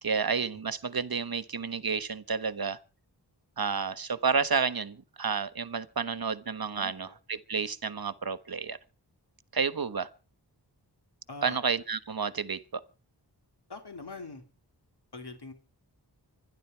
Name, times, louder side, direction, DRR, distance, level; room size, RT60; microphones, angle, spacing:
voice 1, 0.0-2.8 3.6-8.8 9.5-10.1 11.4-12.8, right 5 dB, 55° right, 1.3 m, -30 dB
voice 2, 6.8-7.2 11.3-11.6 13.7-14.4 15.1-15.5, left 3 dB, 70° left, 3.4 m, -43 dB
25.0 x 11.0 x 4.6 m
wide cardioid pair, 45°, 42 cm